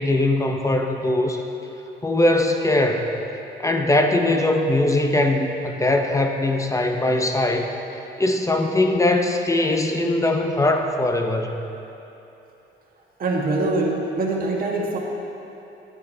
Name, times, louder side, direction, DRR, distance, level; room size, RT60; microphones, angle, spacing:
voice 1, 0.0-1.4 2.0-3.1 3.6-7.7 8.2-11.6, left 2 dB, 15° left, 4 dB, 0.6 m, -21 dB
voice 2, 13.2-15.0, right 2 dB, 45° right, -2 dB, 1.4 m, -23 dB
10.5 x 8.0 x 2.7 m, 2.9 s
cardioid pair, 90°, 20 cm